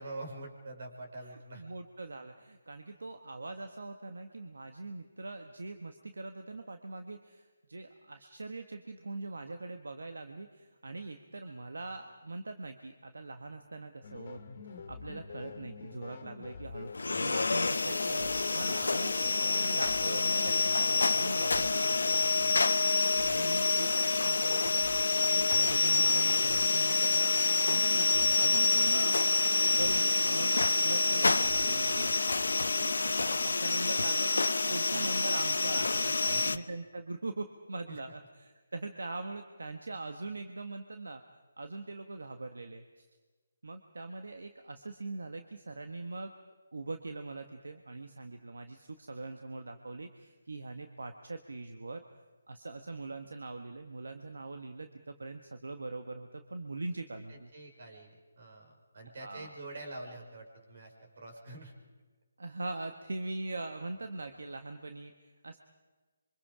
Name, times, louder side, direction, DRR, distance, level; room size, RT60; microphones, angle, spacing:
voice 1, 0.0-1.7 35.7-36.5 37.9-38.0 57.3-61.7, right 2 dB, 60° right, 3 dB, 5.0 m, -46 dB
voice 2, 1.2-14.4 14.7-22.4 23.3-27.4 27.6-29.2 29.7-32.1 32.8-41.2 41.6-43.1 43.6-46.3 46.7-52.0 52.5-57.5 59.2-59.5 62.4-65.1 65.4-65.6, right 2 dB, 80° right, 7 dB, 1.5 m, -42 dB
sound 1, 14.0-32.9, left 5 dB, 50° left, 2.1 m, -46 dB
sound 2, 16.9-36.6, left 3 dB, 80° left, 0.8 m, -27 dB
27.0 x 24.5 x 5.0 m, 1.3 s
figure-of-eight pair, 155°, 0 cm